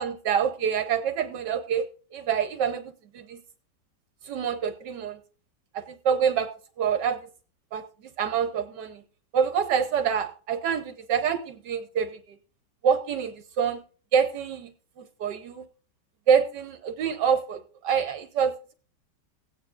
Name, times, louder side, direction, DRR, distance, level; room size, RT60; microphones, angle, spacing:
voice 1, 0.0-1.8 2.1-2.8 3.1-3.4 4.2-5.2 5.7-6.5 6.8-7.2 7.7-7.8 8.2-9.0 9.3-12.1 12.8-13.8 14.1-14.7 15.2-15.6 16.3-18.7, right 7 dB, 75° right, 8 dB, 1.4 m, -26 dB
16.5 x 9.4 x 2.5 m, 0.39 s
omnidirectional pair, 1.9 m